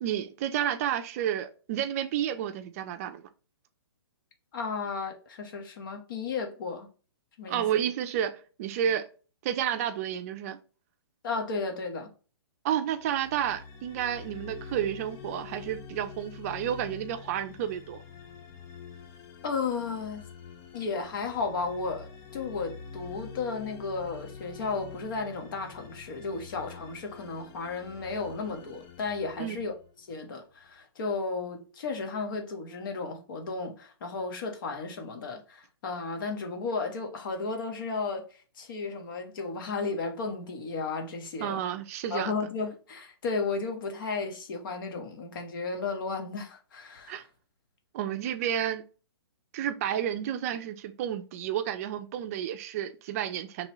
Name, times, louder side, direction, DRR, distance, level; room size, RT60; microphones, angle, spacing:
voice 1, 0.0-3.2 7.5-9.0 9.4-10.6 12.6-18.0 29.4-29.6 41.4-42.3 47.1-47.2 47.9-48.8 49.5-53.7, right 10 dB, 35° right, 0.6 m, -31 dB
voice 2, 4.5-6.9 7.4-7.6 11.2-12.1 19.4-20.2 20.7-29.7 30.1-38.2 38.6-41.6 42.1-47.2, left 4 dB, 50° left, 1.4 m, -34 dB
sound 1, 13.0-30.1, left 6 dB, 20° left, 0.4 m, -46 dB
5.1 x 3.3 x 3.1 m
hypercardioid pair, 150°, 14 cm